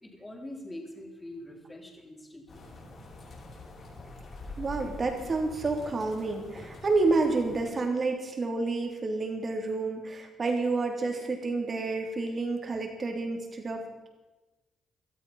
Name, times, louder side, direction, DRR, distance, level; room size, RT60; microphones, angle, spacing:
voice 1, 0.0-2.6 4.0-4.4, left 1 dB, 10° left, 1 dB, 3.8 m, -44 dB
sound 1, 2.5-7.6, left 2 dB, 50° left, 6.5 m, -45 dB
voice 2, 4.6-13.8, right 3 dB, 40° right, 3 dB, 3.3 m, -29 dB
17.5 x 13.0 x 5.7 m, 1.1 s
cardioid pair, 90°, 0 cm